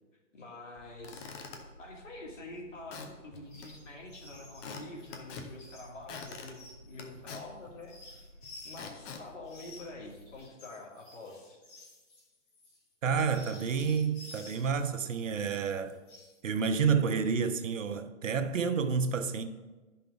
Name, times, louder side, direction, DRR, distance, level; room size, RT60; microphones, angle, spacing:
voice 1, 0.3-1.4 1.8-8.3 8.7-11.6, left 2 dB, 85° left, 2.4 m, -47 dB
Squeak / Wood, 0.8-10.4, left 4 dB, 15° left, 0.5 m, -48 dB
sound 1, 3.4-3.8 4.1-9.0 9.4-14.7 15.1-16.4, left 2 dB, 45° left, 2.9 m, -53 dB
voice 2, 13.0-16.0 16.4-19.4, right 6 dB, 85° right, 0.9 m, -29 dB
11.0 x 5.5 x 3.9 m
hypercardioid pair, 140°, 37 cm